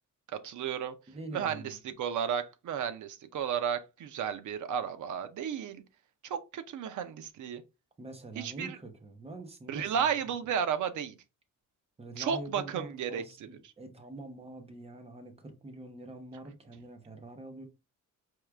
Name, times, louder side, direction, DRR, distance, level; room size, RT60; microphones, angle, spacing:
voice 1, 0.4-1.0 1.3-1.6 2.0-5.8 6.2-7.6 8.4-8.8 9.7-11.2 12.2-13.2, right 8 dB, 70° right, 0.7 m, -33 dB
voice 2, 1.1-2.0 8.0-10.3 12.0-17.6, right 2 dB, 20° right, 0.7 m, -45 dB
4.6 x 2.4 x 3.3 m
wide cardioid pair, 175°, 31 cm